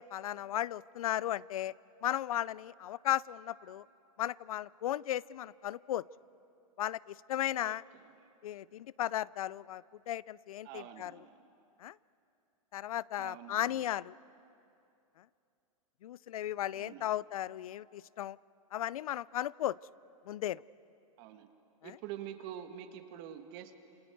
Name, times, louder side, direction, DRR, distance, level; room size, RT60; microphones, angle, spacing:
voice 1, 0.0-1.7 2.0-3.8 4.2-6.0 6.8-7.8 8.4-11.1 11.8-11.9 12.7-14.1 16.0-18.4 18.7-19.8 20.3-20.6 21.8-21.9, left 12 dB, 80° left, 22 dB, 0.4 m, -35 dB
voice 2, 10.6-11.3 13.2-13.9 16.7-17.1 21.2-21.5 21.8-23.8, right 10 dB, 45° right, 7 dB, 1.6 m, -46 dB
28.0 x 27.5 x 4.6 m, 2.7 s
hypercardioid pair, 135°, 18 cm